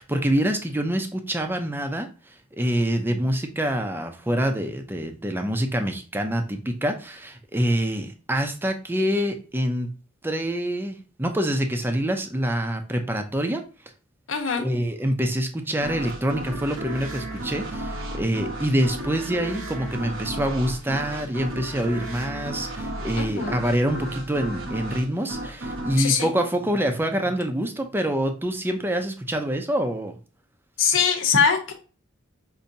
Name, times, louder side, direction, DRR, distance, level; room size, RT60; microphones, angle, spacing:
voice 1, 0.0-2.1 2.5-9.9 10.2-13.6 14.6-30.2, equal, 10° right, 5 dB, 0.5 m, -26 dB
voice 2, 14.3-14.7 23.2-23.6 26.0-26.3 30.8-31.7, left 6 dB, 70° left, 3 dB, 1.0 m, -22 dB
sound 1, 15.8-27.3, right 1 dB, 75° right, 0.9 m, -34 dB
5.3 x 2.7 x 2.6 m, 0.36 s
head